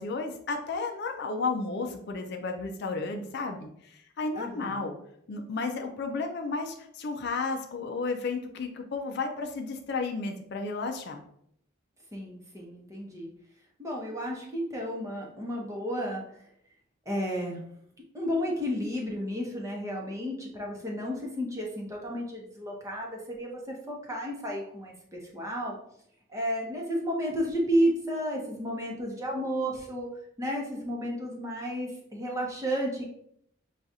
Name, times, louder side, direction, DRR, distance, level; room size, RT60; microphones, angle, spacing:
voice 1, 0.0-4.9 5.3-11.2, left 3 dB, 55° left, 4 dB, 0.4 m, -33 dB
voice 2, 4.4-4.8 12.1-13.3 13.8-16.2 17.1-17.6 18.1-25.7 26.3-30.1 30.4-33.0, equal, 15° right, -2 dB, 0.8 m, -32 dB
6.1 x 2.3 x 2.7 m, 0.70 s
head